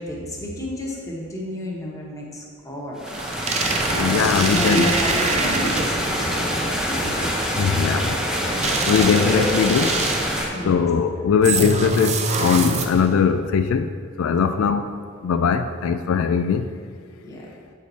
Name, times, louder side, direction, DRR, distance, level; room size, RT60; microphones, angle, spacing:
voice 1, 0.0-3.2 3.5-4.2 4.5-7.8 8.5-8.9 10.3-10.9 14.3-14.6 17.2-17.5, equal, 15° left, -3 dB, 1.2 m, -31 dB
sound 1, 3.0-10.5, equal, 5° right, 0.8 m, -25 dB
sound 2, 3.1-6.2 8.6-10.4 11.4-13.2, right 3 dB, 35° right, 0.5 m, -25 dB
voice 2, 3.9-4.9 7.6-8.2 8.4-8.5 8.9-9.9 10.6-13.9 14.2-14.8 15.2-16.6, left 6 dB, 80° left, 8 dB, 0.3 m, -20 dB
8.2 x 4.7 x 4.1 m, 2.1 s
head